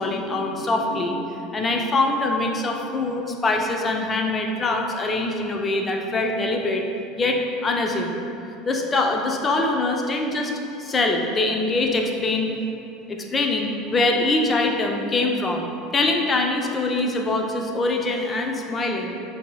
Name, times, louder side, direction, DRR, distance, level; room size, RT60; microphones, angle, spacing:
voice 1, 0.0-6.8 7.2-8.2 8.7-10.5 10.8-12.5 13.1-19.2, left 2 dB, 25° left, 2 dB, 0.5 m, -23 dB
8.1 x 2.8 x 2.2 m, 2.7 s
figure-of-eight pair, 70°, 0 cm